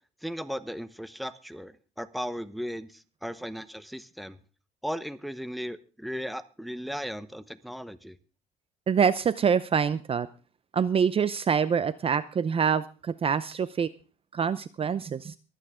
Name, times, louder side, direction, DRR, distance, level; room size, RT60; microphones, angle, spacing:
voice 1, 0.2-4.4 4.8-8.2, equal, ahead, 14 dB, 0.9 m, -36 dB
voice 2, 8.9-10.3 10.7-13.9 14.3-15.4, right 7 dB, 35° right, 16 dB, 0.6 m, -25 dB
23.5 x 9.3 x 3.7 m, 0.35 s
cardioid pair, 110°, 17 cm